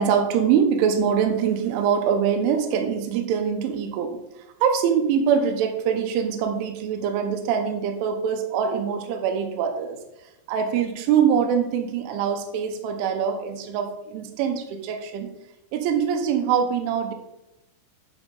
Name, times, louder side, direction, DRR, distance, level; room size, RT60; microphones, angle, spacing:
voice 1, 0.0-10.0 10.5-15.3 15.7-17.1, right 7 dB, 85° right, 5 dB, 3.1 m, -23 dB
11.0 x 5.3 x 3.9 m, 0.90 s
omnidirectional pair, 5.9 m